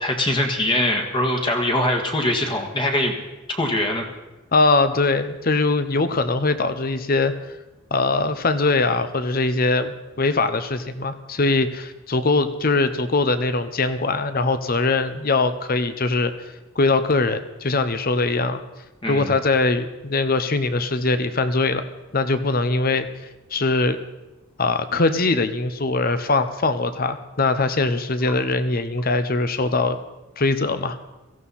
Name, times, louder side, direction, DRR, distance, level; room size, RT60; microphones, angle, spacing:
voice 1, 0.0-3.1 3.5-4.0 19.0-19.3, left 1 dB, 25° left, 2 dB, 1.6 m, -22 dB
voice 2, 4.5-7.3 7.9-16.3 16.8-18.6 19.1-21.8 22.1-23.1 23.5-24.0 24.6-30.0 30.4-31.0, left 3 dB, 45° left, 10 dB, 0.9 m, -21 dB
17.5 x 14.5 x 4.2 m, 1.1 s
head